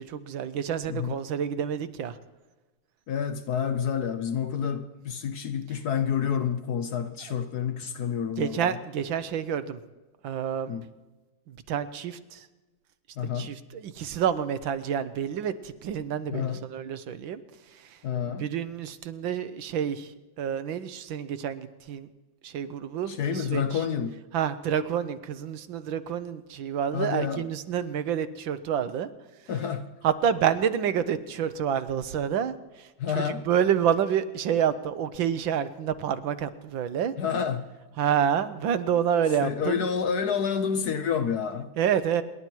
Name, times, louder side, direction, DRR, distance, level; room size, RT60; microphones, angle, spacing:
voice 1, 0.0-2.2 8.4-9.8 10.2-10.7 11.5-12.5 13.3-17.4 17.8-18.0 18.4-22.1 22.4-23.8 24.3-29.1 30.0-32.9 33.1-37.1 38.0-39.9 41.8-42.2, right 8 dB, 75° right, 1.6 m, -28 dB
voice 2, 3.1-8.8 10.7-10.8 13.2-13.5 16.3-16.7 18.0-18.4 23.1-24.2 26.9-27.5 29.5-29.9 33.0-33.4 37.2-37.7 39.4-41.7, left 7 dB, 60° left, 1.2 m, -29 dB
27.5 x 11.5 x 4.5 m
omnidirectional pair, 2.2 m